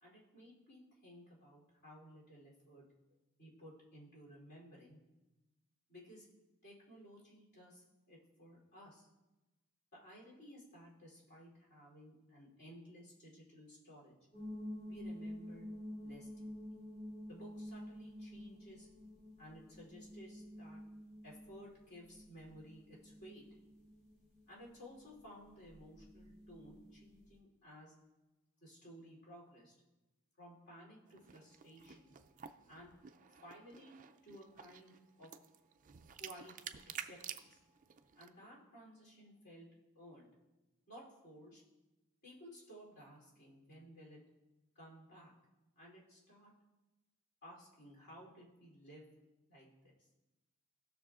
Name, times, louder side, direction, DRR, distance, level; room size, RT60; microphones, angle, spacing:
voice 1, 0.0-2.8 3.4-5.0 5.9-6.3 6.6-9.1 9.9-14.1 14.8-15.7 16.0-16.5 17.3-18.9 19.4-20.8 21.2-23.4 24.5-27.9 28.6-29.7 30.4-32.1 32.7-32.9 33.4-33.9 34.2-35.3 36.2-36.5 37.0-37.6 38.1-39.7 39.9-40.3 40.9-41.6 42.2-44.2 44.7-45.3 45.7-46.5 47.4-49.1 49.5-49.7 50.0-50.1, equal, 50° left, -4 dB, 3.1 m, -56 dB
sound 1, 14.3-27.4, equal, 35° left, 3.0 m, -50 dB
sound 2, 31.1-38.3, right 8 dB, 35° right, 0.4 m, -51 dB
16.5 x 6.4 x 2.4 m, 1.1 s
head